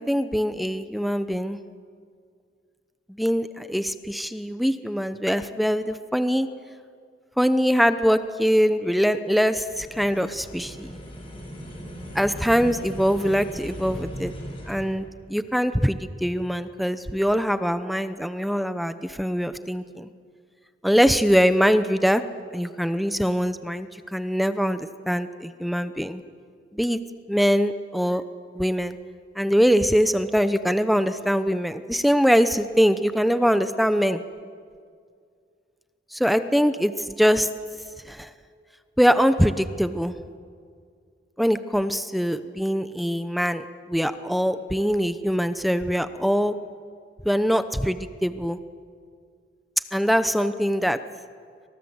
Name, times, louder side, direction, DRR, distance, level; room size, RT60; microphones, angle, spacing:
voice 1, 0.0-1.6 3.1-6.5 7.4-11.0 12.1-14.3 14.7-20.1 20.8-22.2 22.5-26.2 26.7-27.0 27.3-28.2 28.5-29.0 29.4-34.2 36.1-37.5 38.1-38.3 39.0-40.1 41.4-46.5 47.2-48.6 49.9-51.0, equal, ahead, 11 dB, 0.8 m, -23 dB
sound 1, 9.7-14.9, equal, 30° left, 6.0 m, -38 dB
29.5 x 25.0 x 8.0 m, 2.2 s
head